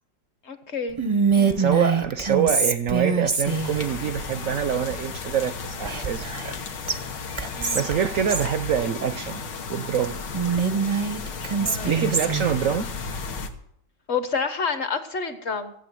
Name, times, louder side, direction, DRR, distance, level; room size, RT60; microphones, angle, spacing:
voice 1, 0.4-1.0 1.3-1.6 7.5-7.9 11.6-11.9 14.1-15.7, left 5 dB, 40° left, 9 dB, 1.3 m, -29 dB
Whispering, 1.0-3.8 5.8-6.6 6.9-7.0 7.4-8.5 10.3-12.5, right 5 dB, 35° right, 0.5 m, -24 dB
voice 2, 1.6-6.6 7.7-9.4 9.7-10.2 11.8-12.9, right 8 dB, 65° right, 10 dB, 0.8 m, -25 dB
sound 1, 3.4-13.5, left 5 dB, 70° left, 1.9 m, -34 dB
15.5 x 8.1 x 7.6 m, 0.71 s
omnidirectional pair, 2.0 m